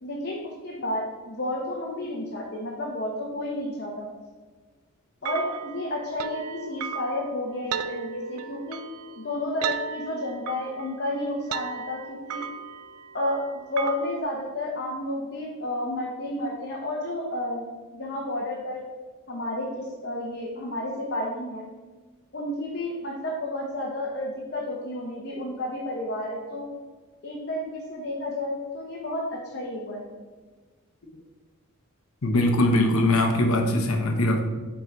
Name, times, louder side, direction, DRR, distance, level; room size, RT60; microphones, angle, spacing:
voice 1, 0.0-4.1 5.2-8.8 9.2-12.5 13.1-13.4 13.7-17.6 17.9-18.8 19.3-21.7 22.3-26.7 27.2-30.1, left 1 dB, 50° left, -3 dB, 1.0 m, -31 dB
sound 1, 5.2-14.2, right 6 dB, 85° right, 0.4 m, -36 dB
voice 2, 32.2-34.4, left 1 dB, 75° left, 4 dB, 1.0 m, -21 dB
9.1 x 3.8 x 4.0 m, 1.4 s
head